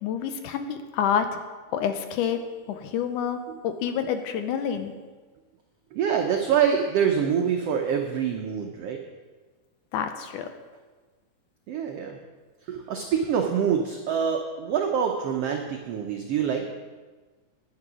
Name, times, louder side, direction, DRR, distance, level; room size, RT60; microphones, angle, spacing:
voice 1, 0.0-1.4 1.7-2.4 2.7-3.4 3.6-4.9 9.9-10.5, left 8 dB, 75° left, 8 dB, 2.1 m, -28 dB
voice 2, 5.9-9.0 11.7-12.2 12.6-16.7, right 7 dB, 80° right, 2 dB, 1.4 m, -25 dB
9.7 x 9.7 x 6.2 m, 1.3 s
omnidirectional pair, 3.8 m